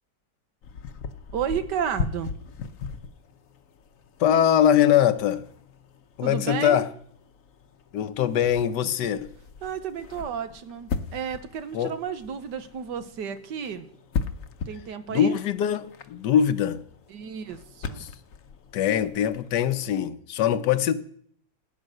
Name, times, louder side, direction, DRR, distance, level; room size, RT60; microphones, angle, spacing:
sound 1, 0.6-19.9, left 5 dB, 55° left, 1.1 m, -39 dB
voice 1, 1.3-2.3 6.2-6.8 9.6-13.9 14.7-15.4 17.1-18.1, right 8 dB, 75° right, 1.6 m, -32 dB
voice 2, 4.2-5.4 6.2-6.9 7.9-9.3 11.7-11.9 15.1-16.8 18.0-18.1 18.7-20.9, left 9 dB, 75° left, 1.3 m, -22 dB
15.5 x 9.2 x 6.5 m
omnidirectional pair, 1.9 m